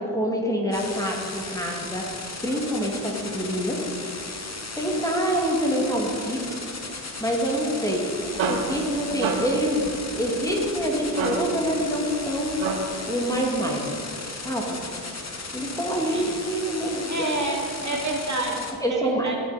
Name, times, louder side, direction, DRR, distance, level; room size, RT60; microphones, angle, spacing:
voice 1, 0.0-2.1 2.4-3.9 4.8-6.6 7.2-8.0 8.4-12.5 13.1-13.9 14.4-14.8 15.5-17.3 18.8-19.3, equal, 5° left, -1 dB, 2.3 m, -26 dB
sound 1, 0.7-18.7, left 3 dB, 30° left, 1.7 m, -36 dB
sound 2, 7.9-13.1, right 4 dB, 65° right, 1.4 m, -31 dB
voice 2, 17.1-19.4, right 2 dB, 35° right, -1 dB, 2.5 m, -29 dB
17.5 x 6.2 x 4.2 m, 2.5 s
hypercardioid pair, 40°, 50 cm